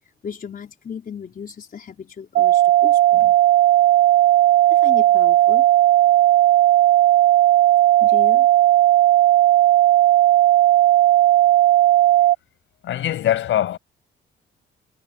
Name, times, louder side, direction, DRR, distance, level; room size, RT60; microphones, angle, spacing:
voice 1, 0.2-3.4 4.7-5.7 8.0-8.5, left 7 dB, 45° left, 4.1 m, -35 dB
sound 1, 2.3-12.3, right 14 dB, 60° right, 0.7 m, -15 dB
voice 2, 12.8-13.8, left 12 dB, 75° left, 5.5 m, -22 dB
cardioid pair, 90°, 20 cm